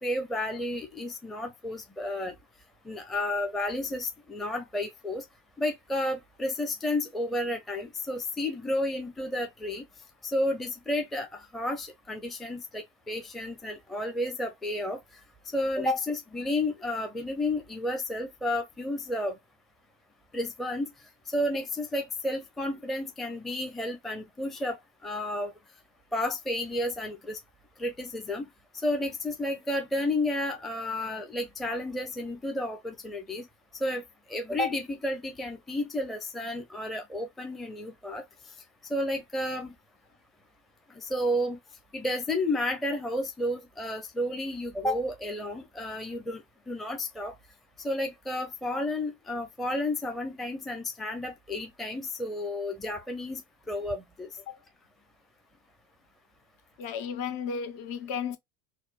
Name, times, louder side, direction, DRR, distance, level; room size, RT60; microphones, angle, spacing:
voice 1, 0.0-2.3 2.9-5.2 5.6-9.8 10.2-15.0 15.5-19.3 20.3-20.9 21.3-24.8 25.0-25.5 26.1-27.4 27.8-28.5 28.8-33.5 33.8-34.0 34.3-38.2 38.9-39.7 41.0-41.6 41.9-46.4 46.7-47.3 47.8-53.4 53.7-54.3, left 1 dB, ahead, 0.6 m, -31 dB
voice 2, 56.8-58.4, left 6 dB, 50° left, 1.0 m, -34 dB
4.2 x 2.2 x 2.4 m
supercardioid pair, 110°, 41 cm